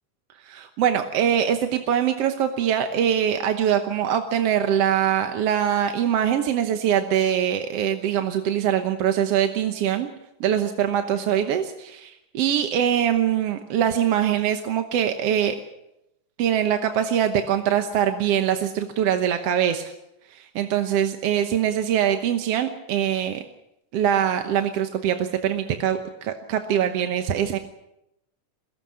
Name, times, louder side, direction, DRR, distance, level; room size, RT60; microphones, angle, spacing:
voice 1, 0.4-10.1 10.4-15.6 16.4-19.9 20.3-23.4 23.9-27.6, right 9 dB, 60° right, 7 dB, 1.8 m, -23 dB
22.0 x 18.0 x 7.6 m, 0.86 s
omnidirectional pair, 3.5 m